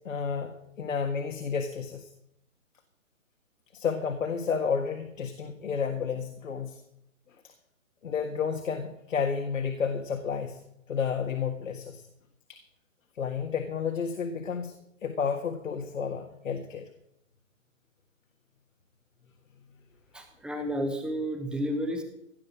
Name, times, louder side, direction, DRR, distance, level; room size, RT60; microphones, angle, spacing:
voice 1, 0.0-2.1 3.7-6.8 8.0-10.6 10.9-12.0 12.5-12.6 13.2-14.8 15.0-16.8, left 6 dB, 70° left, 5 dB, 1.8 m, -31 dB
voice 2, 20.1-22.0, equal, ahead, 5 dB, 0.9 m, -31 dB
16.5 x 6.5 x 7.7 m, 0.78 s
hypercardioid pair, 145°, 40 cm